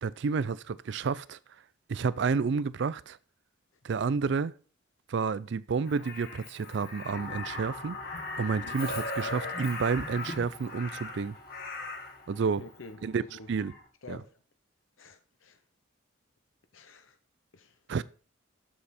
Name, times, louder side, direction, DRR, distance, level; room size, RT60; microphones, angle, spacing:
voice 1, 0.0-1.4 1.9-3.2 3.8-4.5 5.1-8.0 8.4-11.4 12.3-12.6 13.0-13.2 13.5-13.7 14.1-14.2 17.9-18.0, right 5 dB, 60° right, 0.4 m, -30 dB
Crow, 5.9-12.2 13.6-13.8, left 3 dB, 45° left, 1.6 m, -38 dB
sound 1, 7.1-13.9, left 2 dB, 25° left, 1.2 m, -48 dB
voice 2, 12.6-13.0 13.3-13.5 14.0-14.4 15.0-15.6 16.7-17.2 17.5-17.8, left 3 dB, 75° left, 0.8 m, -48 dB
7.4 x 6.9 x 4.2 m
head